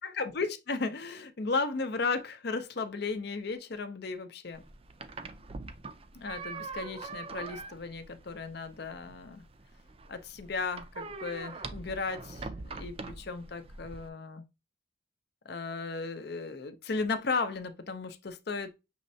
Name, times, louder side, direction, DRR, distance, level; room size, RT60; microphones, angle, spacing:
voice 1, 0.0-4.6 6.1-9.4 10.1-14.4 15.5-18.7, left 4 dB, 55° left, 0.6 m, -35 dB
sound 1, 4.5-14.1, right 3 dB, 30° right, 0.4 m, -43 dB
6.3 x 3.1 x 2.7 m
head